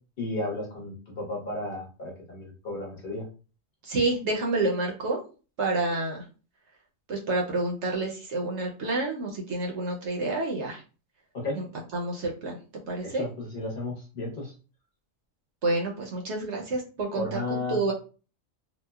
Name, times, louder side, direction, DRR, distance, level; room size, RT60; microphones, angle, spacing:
voice 1, 0.2-3.3 11.3-11.6 13.0-14.5 17.1-17.8, left 2 dB, 50° left, -2 dB, 0.9 m, -33 dB
voice 2, 3.8-5.2 5.6-6.2 7.1-10.8 11.6-11.7 11.9-12.6 12.9-13.3 15.6-17.2 17.7-17.9, right 2 dB, 65° right, 0 dB, 0.8 m, -28 dB
2.9 x 2.0 x 2.2 m, 0.35 s
omnidirectional pair, 1.4 m